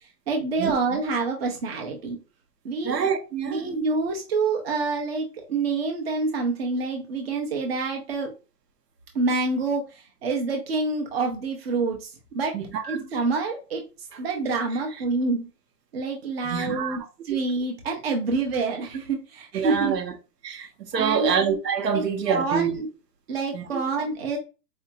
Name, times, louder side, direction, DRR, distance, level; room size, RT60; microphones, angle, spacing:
voice 1, 0.3-2.2 2.6-3.0 3.5-8.3 9.1-12.6 12.8-13.8 14.2-15.5 15.9-17.0 17.2-20.0 20.9-21.3 21.9-22.9 23.3-24.4, right 3 dB, 40° right, 0.8 m, -27 dB
voice 2, 2.8-3.6 12.5-13.1 16.4-17.0 19.5-20.1 20.4-20.7 20.9-22.7 23.5-23.8, right 7 dB, 85° right, 1.2 m, -26 dB
4.6 x 2.8 x 2.6 m
hypercardioid pair, 180°, 48 cm